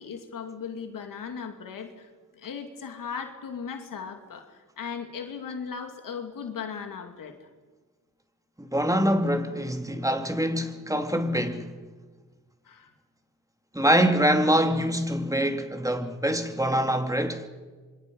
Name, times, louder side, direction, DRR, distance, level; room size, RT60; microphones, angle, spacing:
voice 1, 0.0-7.5 12.6-12.9, left 6 dB, 80° left, 2.5 m, -37 dB
voice 2, 8.6-11.8 13.7-17.5, equal, 10° right, 2.8 m, -24 dB
27.0 x 24.5 x 5.5 m
supercardioid pair, 45°, 32 cm